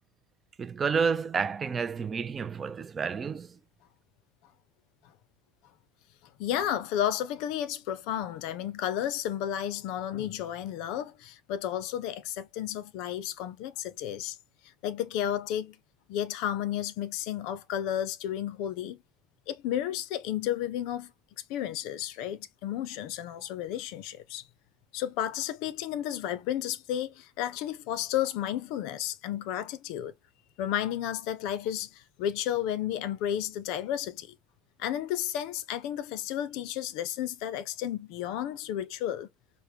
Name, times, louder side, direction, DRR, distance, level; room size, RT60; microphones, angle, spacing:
voice 1, 0.6-3.6, right 5 dB, 20° right, 0.3 m, -30 dB
voice 2, 6.4-14.4 14.8-15.8 16.1-19.0 19.5-21.1 21.5-24.4 24.9-30.1 30.6-34.3 34.8-39.3, left 11 dB, 60° left, 0.5 m, -32 dB
3.6 x 2.1 x 2.8 m
supercardioid pair, 145°, 0 cm